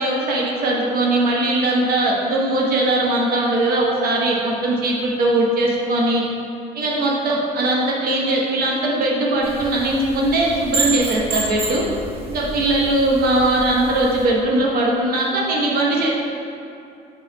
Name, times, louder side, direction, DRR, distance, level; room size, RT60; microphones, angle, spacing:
voice 1, 0.0-6.2 6.7-11.8 12.3-16.1, right 1 dB, 60° right, -3 dB, 1.0 m, -20 dB
sound 1, 9.4-14.3, right 3 dB, 35° right, 1.0 m, -29 dB
5.3 x 4.1 x 5.9 m, 2.6 s
cardioid pair, 110°, 17 cm